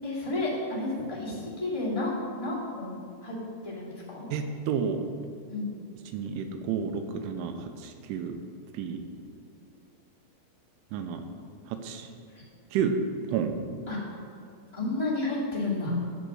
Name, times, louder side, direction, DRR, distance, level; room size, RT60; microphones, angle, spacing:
voice 1, 0.0-3.0 3.2-3.4 3.6-4.3 5.5-5.7 12.3-12.4 13.9-14.0 14.7-16.0, left 2 dB, 25° left, -10 dB, 0.6 m, -31 dB
voice 2, 4.3-5.1 6.1-8.4 8.7-9.0 10.9-11.2 11.7-12.1 12.7-12.9 13.3-13.5, right 7 dB, 85° right, 6 dB, 3.1 m, -30 dB
13.0 x 5.2 x 8.0 m, 2.4 s
omnidirectional pair, 5.7 m